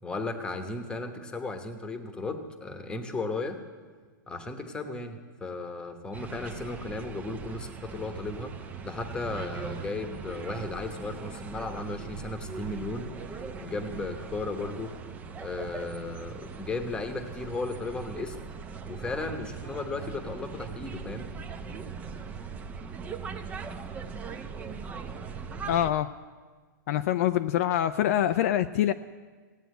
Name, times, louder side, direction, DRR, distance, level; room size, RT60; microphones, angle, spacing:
voice 1, 0.0-3.6 4.3-14.9 15.4-18.4 18.9-21.3, left 3 dB, 10° left, 7 dB, 1.1 m, -35 dB
sound 1, 6.1-25.9, right 5 dB, 15° right, 0.6 m, -40 dB
voice 2, 25.7-26.1 26.9-28.9, left 11 dB, 45° left, 9 dB, 0.4 m, -25 dB
16.5 x 9.1 x 9.3 m, 1.5 s
hypercardioid pair, 155°, 11 cm